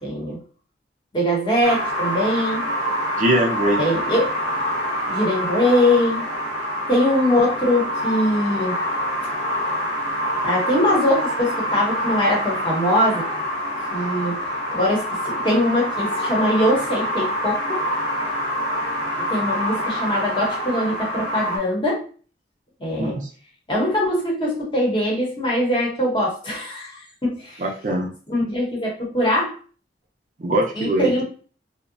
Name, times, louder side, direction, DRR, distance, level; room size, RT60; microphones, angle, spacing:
voice 1, 0.0-0.4 1.1-2.6 3.8-4.3 5.1-6.2 6.9-8.8 10.4-13.3 13.9-17.8 19.3-22.1 22.8-23.2 23.7-27.6 28.3-29.5 30.7-31.2, left 1 dB, 25° left, -3 dB, 0.9 m, -22 dB
sound 1, 1.6-21.6, equal, 85° left, 1.0 m, -26 dB
voice 2, 3.1-3.8 23.0-23.3 27.6-28.1 30.4-31.1, right 1 dB, 45° right, 2 dB, 0.4 m, -21 dB
2.7 x 2.0 x 2.5 m, 0.40 s
head